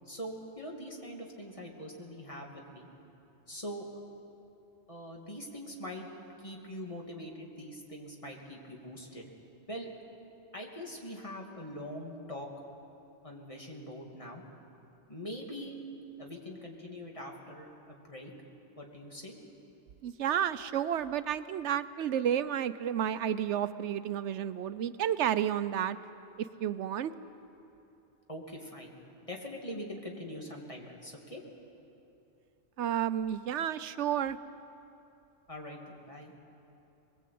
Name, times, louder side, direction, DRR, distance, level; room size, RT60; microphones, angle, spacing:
voice 1, 0.1-2.9 3.5-3.9 4.9-6.1 6.4-9.2 9.7-9.9 10.5-12.5 13.2-14.4 15.1-15.8 16.2-18.3 18.8-19.4 28.3-29.0 29.3-31.4 35.5-36.3, equal, 30° left, -1 dB, 2.7 m, -43 dB
voice 2, 20.0-26.0 26.4-27.1 32.8-34.4, right 9 dB, 85° right, 13 dB, 1.0 m, -31 dB
22.0 x 20.5 x 8.5 m, 2.8 s
omnidirectional pair, 1.2 m